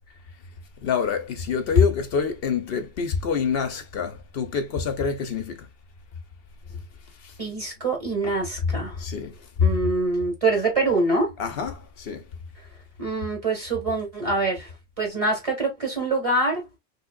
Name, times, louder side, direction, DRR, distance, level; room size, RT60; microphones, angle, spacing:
voice 1, 0.8-5.7 6.7-6.8 7.2-7.4 8.2-8.3 9.0-9.9 11.4-12.2, left 6 dB, 65° left, 0.9 m, -26 dB
voice 2, 7.4-9.0 9.6-11.4 13.0-14.7 15.0-16.7, right 3 dB, 30° right, 1.9 m, -25 dB
3.6 x 3.1 x 2.2 m
omnidirectional pair, 1.1 m